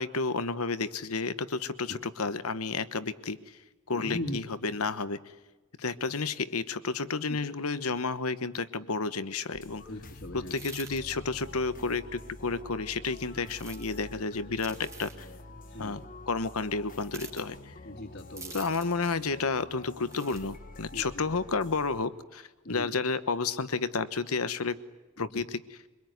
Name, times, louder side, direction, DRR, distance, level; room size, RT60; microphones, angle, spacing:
voice 1, 0.0-3.4 3.9-5.2 5.8-9.8 10.3-15.3 15.8-17.7 18.5-24.8 25.2-25.6, left 4 dB, 75° left, 13 dB, 1.1 m, -31 dB
voice 2, 3.9-4.4 7.3-7.4 9.6-10.5 15.5-16.0 17.8-18.6 20.9-21.0 22.6-22.9 25.2-25.4, left 1 dB, 55° left, -1 dB, 2.3 m, -39 dB
sound 1, 9.5-22.1, left 2 dB, 40° left, 1.3 m, -48 dB
sound 2, 10.4-11.0 13.5-14.0 14.6-15.2 17.1-17.5 18.4-19.0 20.0-20.4, right 4 dB, 15° right, 2.6 m, -46 dB
24.0 x 22.5 x 9.5 m, 1.2 s
head